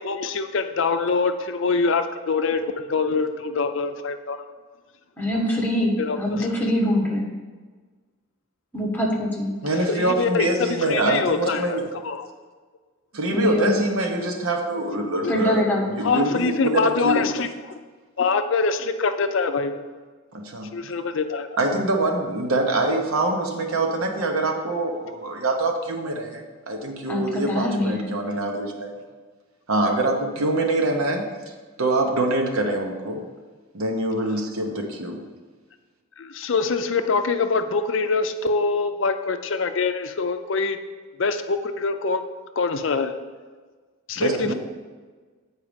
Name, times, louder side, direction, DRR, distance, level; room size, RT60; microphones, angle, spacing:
voice 1, 0.0-4.4 6.0-6.5 9.9-11.8 12.0-12.3 15.2-15.3 16.0-17.7 18.2-19.9 20.7-21.5 36.2-40.8 41.2-42.2 42.6-43.1 44.1-44.5, left 4 dB, 60° left, 8 dB, 0.5 m, -24 dB
voice 2, 5.2-7.3 8.7-9.5 13.3-14.0 15.3-15.9 27.1-27.2 27.5-28.1, left 1 dB, 10° left, -2 dB, 1.2 m, -23 dB
voice 3, 9.6-11.8 13.1-15.7 15.9-17.3 20.3-20.7 21.6-28.9 29.7-31.3 31.8-33.3 33.7-35.2 44.2-44.5, right 2 dB, 80° right, 3 dB, 1.1 m, -24 dB
8.3 x 4.7 x 5.1 m, 1.4 s
head